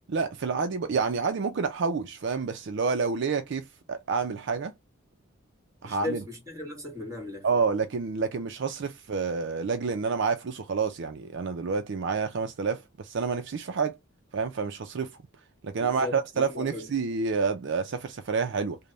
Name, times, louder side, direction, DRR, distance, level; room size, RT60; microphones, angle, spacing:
voice 1, 0.1-4.7 5.8-6.2 7.4-13.9 14.3-15.2 15.6-18.8, right 5 dB, 60° right, 0.4 m, -28 dB
voice 2, 5.8-7.5 15.8-16.9, left 2 dB, 15° right, 1.5 m, -37 dB
3.3 x 2.2 x 3.8 m
head